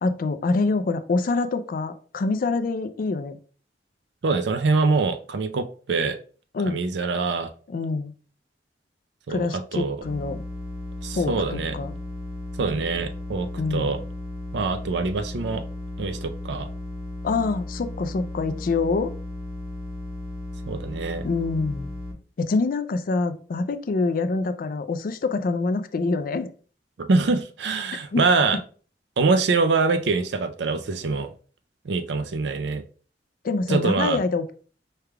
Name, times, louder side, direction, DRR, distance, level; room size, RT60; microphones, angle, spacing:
voice 1, 0.0-3.4 6.5-6.8 7.7-8.1 9.3-10.4 11.1-12.0 13.6-13.9 17.2-19.1 21.2-21.9 22.4-26.5 28.1-28.2 33.4-34.5, left 3 dB, 55° left, 10 dB, 0.4 m, -25 dB
voice 2, 4.2-6.2 6.6-7.5 9.3-10.0 11.0-11.7 12.6-14.0 14.5-15.6 16.0-16.7 20.7-21.3 27.0-28.6 29.2-31.3 31.8-32.8 33.7-34.2, right 4 dB, 70° right, 9 dB, 0.4 m, -24 dB
sound 1, 10.0-22.1, left 1 dB, 5° right, 1.6 m, -35 dB
4.7 x 3.3 x 2.2 m, 0.41 s
head